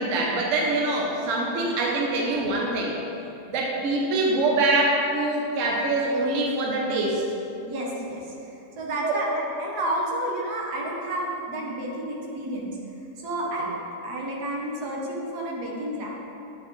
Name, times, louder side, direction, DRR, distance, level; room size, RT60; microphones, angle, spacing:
voice 1, 0.0-3.0 3.5-7.2 9.0-9.2, right 2 dB, 60° right, -2 dB, 1.0 m, -24 dB
voice 2, 7.7-12.8 13.2-13.7 14.0-16.1, right 1 dB, 75° right, -2 dB, 1.5 m, -31 dB
8.2 x 4.3 x 3.1 m, 2.8 s
omnidirectional pair, 1.7 m